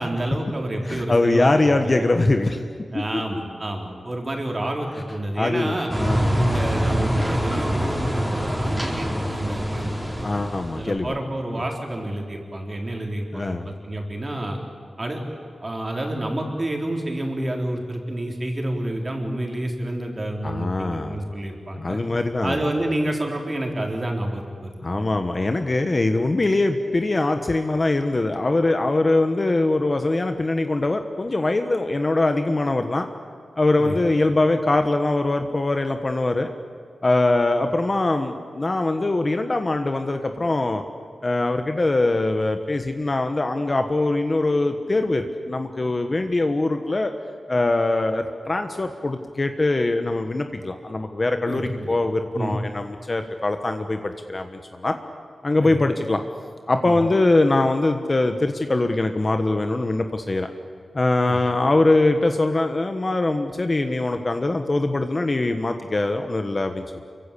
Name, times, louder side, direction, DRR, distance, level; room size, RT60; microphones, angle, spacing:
voice 1, 0.0-2.1 2.9-5.9 6.3-10.3 10.7-14.6 15.0-15.2 15.6-22.0 22.4-25.0 33.8-34.0 51.5-52.0 52.3-52.5 55.6-55.8 56.8-57.0 61.2-61.4, right 1 dB, 25° right, 1 dB, 4.2 m, -29 dB
voice 2, 0.8-2.6 2.9-3.4 5.4-6.3 10.2-11.1 13.3-13.7 20.4-21.2 21.8-22.6 24.8-33.1 33.6-36.5 37.0-40.8 41.2-47.1 47.5-55.0 55.4-56.2 56.7-60.5 60.9-66.8, left 2 dB, 25° left, 6 dB, 1.3 m, -22 dB
sound 1, 5.9-10.9, equal, 5° right, 4.4 m, -24 dB
29.5 x 23.5 x 8.6 m, 2.1 s
wide cardioid pair, 170°, 0 cm